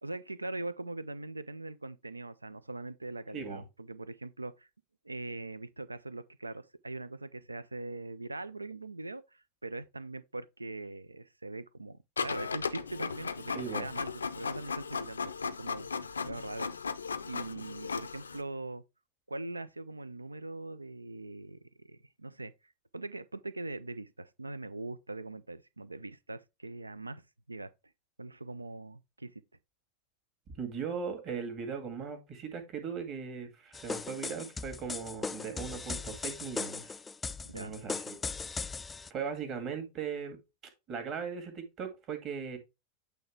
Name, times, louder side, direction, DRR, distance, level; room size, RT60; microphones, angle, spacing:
voice 1, 0.0-4.7 5.0-16.7 17.2-18.8 19.3-22.5 22.9-27.7 28.2-29.4 37.4-37.8, right 2 dB, 80° right, 0.5 m, -42 dB
voice 2, 3.3-3.6 13.5-13.9 30.5-37.0 37.5-38.2 39.1-40.4 40.9-42.6, right 6 dB, 35° right, 1.9 m, -38 dB
Printer, 12.2-18.4, left 5 dB, 75° left, 0.5 m, -36 dB
sound 1, 33.7-39.1, left 4 dB, 15° left, 0.4 m, -38 dB
8.5 x 3.4 x 4.6 m
figure-of-eight pair, 90°, 0 cm